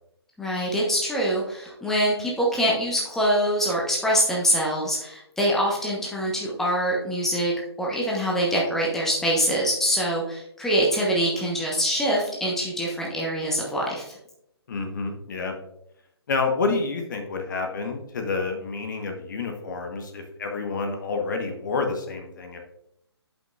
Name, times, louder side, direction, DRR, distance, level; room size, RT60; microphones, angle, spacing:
voice 1, 0.4-7.5 7.8-14.2, equal, 5° left, -3 dB, 1.0 m, -24 dB
voice 2, 14.7-15.5 16.3-22.6, left 4 dB, 45° left, 4 dB, 1.2 m, -28 dB
10.5 x 5.4 x 2.4 m, 0.80 s
figure-of-eight pair, 135°, 14 cm